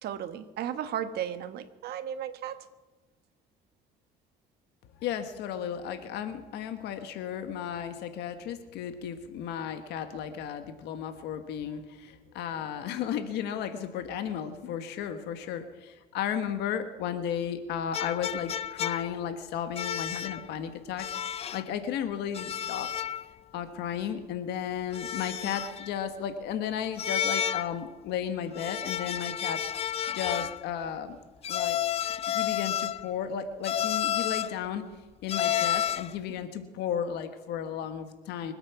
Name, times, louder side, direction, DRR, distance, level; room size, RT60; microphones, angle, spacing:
voice 1, 0.0-2.6, right 10 dB, 70° right, 10 dB, 1.4 m, -35 dB
voice 2, 5.0-22.9 23.5-29.6 30.1-31.2 31.5-31.8 32.1-34.8 35.2-38.5, left 8 dB, 85° left, 8 dB, 1.4 m, -34 dB
sound 1, 17.9-19.3 19.8-20.5 21.0-21.7 22.3-23.3 23.6-23.7 24.9-25.9 27.0-27.8 28.5-30.6 31.4-33.1 33.6-34.6 35.3-36.2, left 10 dB, 35° left, 0.4 m, -31 dB
25.0 x 8.8 x 5.9 m, 1.2 s
cardioid pair, 110°, 17 cm